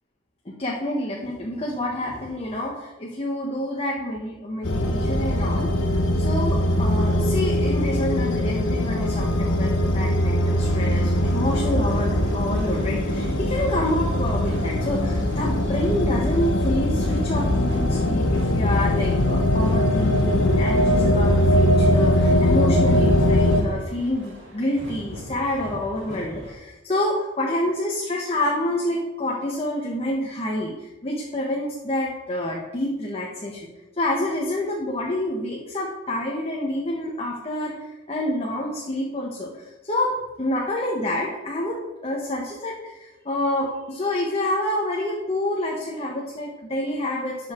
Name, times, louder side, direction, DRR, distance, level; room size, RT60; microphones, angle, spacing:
voice 1, 0.4-5.7 6.2-33.7 34.0-47.5, left 1 dB, 30° left, -2 dB, 1.2 m, -28 dB
sound 1, 4.6-23.6, left 1 dB, 75° left, 1.1 m, -21 dB
sound 2, 10.4-26.5, equal, 65° right, 2.6 m, -39 dB
12.0 x 5.6 x 4.4 m, 1.0 s
head